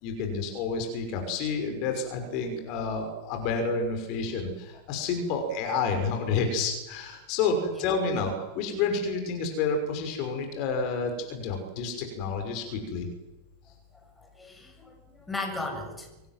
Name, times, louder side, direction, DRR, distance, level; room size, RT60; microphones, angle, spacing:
voice 1, 0.0-13.1, left 4 dB, 40° left, 5 dB, 6.0 m, -29 dB
voice 2, 14.2-16.3, left 2 dB, 10° left, 3 dB, 6.8 m, -37 dB
25.5 x 19.5 x 9.3 m, 1.0 s
figure-of-eight pair, 90°, 0 cm